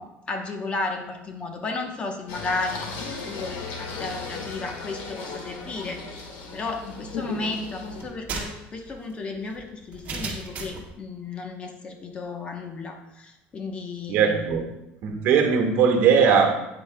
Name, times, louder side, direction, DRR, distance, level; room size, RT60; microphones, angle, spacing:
voice 1, 0.0-2.9 3.2-6.0 6.5-14.6, left 3 dB, 25° left, 4 dB, 0.9 m, -33 dB
Singing, 2.3-8.0, left 4 dB, 80° left, 1.7 m, -36 dB
sound 1, 8.0-10.9, right 4 dB, 40° right, 1.8 m, -35 dB
voice 2, 14.1-14.6 15.0-16.5, right 6 dB, 60° right, 3 dB, 1.3 m, -19 dB
8.8 x 8.4 x 2.2 m, 0.90 s
cardioid pair, 145°, 4 cm